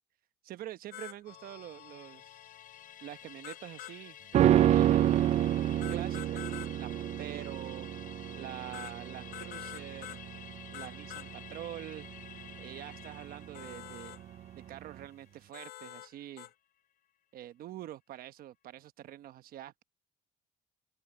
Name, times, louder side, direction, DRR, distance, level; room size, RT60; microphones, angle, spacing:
voice 1, 0.4-2.4 3.0-4.2 4.6-5.1 5.9-7.9 8.3-10.2 10.7-12.1 12.6-14.1 14.7-16.5 17.3-19.8, right 13 dB, 60° right, 1.0 m, -45 dB
sound 1, 0.9-1.2 3.4-4.0 5.8-6.7 8.7-9.0 9.3-10.2 10.7-11.3 13.5-14.2 15.5-16.1 16.4-16.5, left 15 dB, 80° left, 4.0 m, -45 dB
Musical instrument, 1.3-15.9 16.3-16.4, left 11 dB, 60° left, 3.3 m, -52 dB
sound 2, 4.3-13.7 14.0-14.1, right 12 dB, 40° right, 0.4 m, -29 dB
open air
cardioid pair, 140°, 17 cm